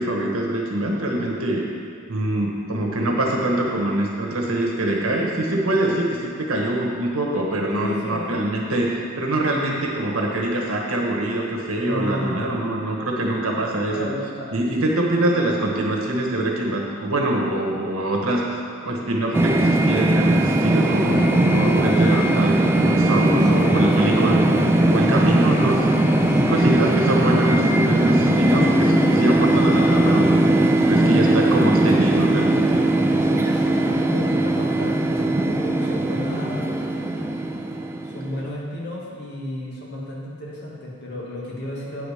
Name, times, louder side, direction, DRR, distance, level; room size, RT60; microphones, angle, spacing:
voice 1, 0.0-1.6 2.1-14.1 14.5-18.4 18.8-24.4 24.9-26.0 26.5-32.8, right 1 dB, 80° right, -1 dB, 1.3 m, -24 dB
voice 2, 7.7-8.4 11.8-12.6 13.9-14.5 23.0-24.0 24.8-25.4 26.3-26.7 30.8-30.9 33.2-37.0 38.0-42.0, left 1 dB, 55° left, -4 dB, 1.8 m, -32 dB
sound 1, 19.3-38.5, right 1 dB, 10° right, 0.4 m, -19 dB
9.0 x 5.0 x 5.0 m, 2.5 s
head